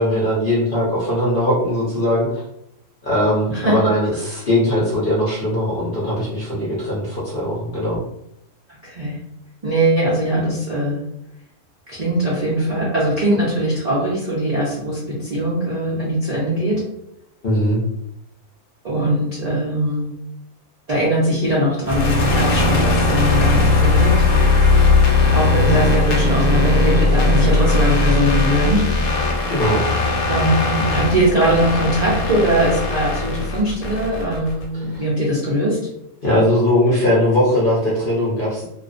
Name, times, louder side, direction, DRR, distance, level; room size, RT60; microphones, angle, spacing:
voice 1, 0.0-2.4 3.0-8.0 17.4-17.8 29.5-29.8 30.2-30.3 34.7-35.0 36.2-38.6, left 1 dB, 55° left, -6 dB, 0.6 m, -20 dB
voice 2, 8.8-9.2 9.6-11.0 11.9-16.8 18.8-20.1 20.9-24.2 25.3-28.9 30.3-35.8, right 1 dB, 70° right, -7 dB, 0.3 m, -20 dB
sound 1, 21.8-34.6, left 3 dB, 75° left, 1.0 m, -18 dB
2.4 x 2.1 x 2.4 m, 0.80 s
omnidirectional pair, 1.6 m